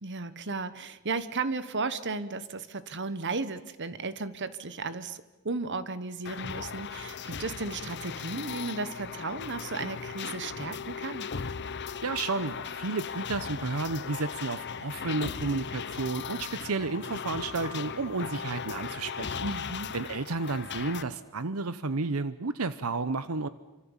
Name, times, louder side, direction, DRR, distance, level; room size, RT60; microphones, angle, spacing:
voice 1, 0.0-11.3 19.4-19.9, right 3 dB, 55° right, 14 dB, 1.2 m, -35 dB
sound 1, 6.2-21.0, left 6 dB, 50° left, 0.9 m, -37 dB
voice 2, 12.0-19.4 19.9-23.5, right 3 dB, 70° right, 14 dB, 0.9 m, -32 dB
27.5 x 25.0 x 7.3 m, 1.0 s
head